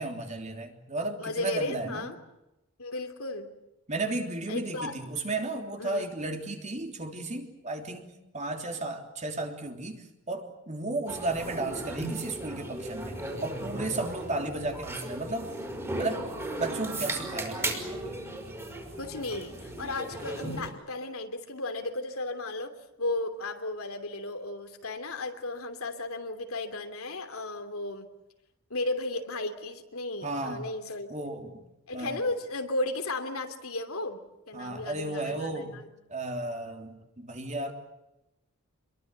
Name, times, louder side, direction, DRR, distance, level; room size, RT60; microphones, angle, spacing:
voice 1, 0.0-2.1 3.9-15.6 16.0-16.3 16.6-18.2 30.2-30.6 31.1-31.6 31.9-32.3 34.5-35.8 36.1-37.7, right 2 dB, 35° right, 4 dB, 3.3 m, -34 dB
voice 2, 1.2-2.2 2.8-3.5 4.5-4.9 5.8-6.1 19.0-22.7 23.0-28.1 28.7-31.3 31.9-34.2 34.5-35.9, left 2 dB, 75° left, 7 dB, 3.0 m, -34 dB
sound 1, 11.1-20.7, right 1 dB, 15° right, 5.0 m, -36 dB
27.0 x 22.5 x 7.9 m, 0.92 s
head